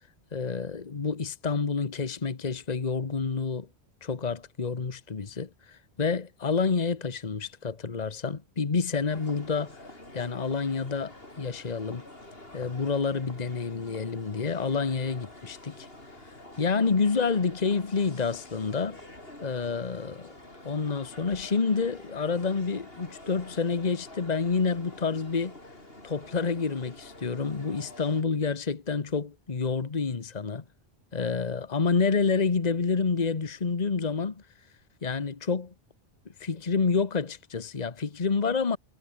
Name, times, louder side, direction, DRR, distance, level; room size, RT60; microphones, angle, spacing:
voice 1, 0.3-3.7 4.0-9.8 10.1-12.1 12.5-15.9 16.2-19.0 19.4-20.3 20.6-25.6 26.0-30.6 31.1-34.4 35.0-35.7 36.2-38.8, left 5 dB, 40° left, 1.3 m, -28 dB
sound 1, 9.1-28.2, left 1 dB, 65° left, 6.1 m, -48 dB
omnidirectional pair, 1.1 m